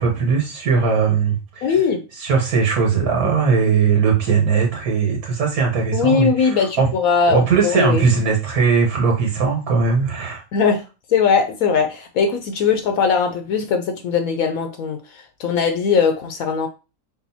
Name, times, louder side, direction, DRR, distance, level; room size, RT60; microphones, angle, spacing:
voice 1, 0.0-1.8 2.2-6.9 7.3-10.4, right 5 dB, 80° right, -1 dB, 1.5 m, -19 dB
voice 2, 1.6-2.0 3.0-3.3 5.9-8.0 10.5-10.8 11.1-16.7, left 5 dB, 75° left, 6 dB, 1.0 m, -20 dB
4.8 x 3.7 x 2.7 m, 0.31 s
omnidirectional pair, 1.5 m